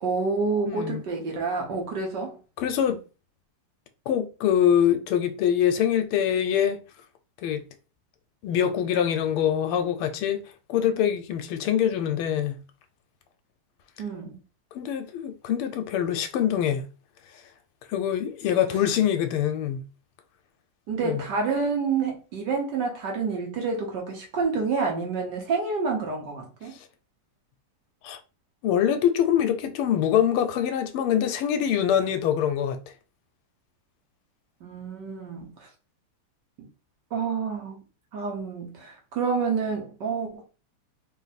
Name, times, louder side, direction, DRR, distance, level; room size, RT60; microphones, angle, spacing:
voice 1, 0.0-2.4 14.0-14.4 20.9-26.7 34.6-35.7 36.6-36.7 37.1-37.8 38.1-40.4, right 4 dB, 60° right, 1.3 m, -28 dB
voice 2, 0.6-1.0 2.6-3.0 4.1-6.8 7.4-7.6 8.4-10.4 10.7-12.6 14.7-16.8 17.9-19.8 21.0-21.2 28.0-28.2 28.6-32.8, left 9 dB, 80° left, 1.5 m, -24 dB
3.6 x 2.7 x 4.0 m
omnidirectional pair, 2.4 m